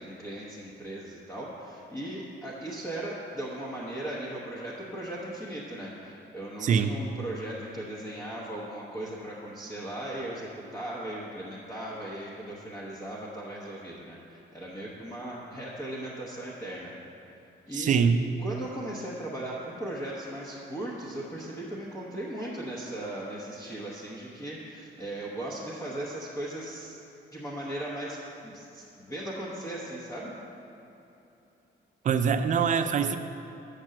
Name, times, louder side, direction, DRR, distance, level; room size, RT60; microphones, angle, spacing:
voice 1, 0.0-16.9 17.7-18.1 18.4-27.0 27.3-30.3, right 1 dB, 15° left, -6 dB, 0.9 m, -37 dB
voice 2, 6.6-6.9 17.8-18.2 32.0-33.2, right 6 dB, 45° right, 9 dB, 0.4 m, -23 dB
6.7 x 6.1 x 7.5 m, 2.9 s
cardioid pair, 170°, 19 cm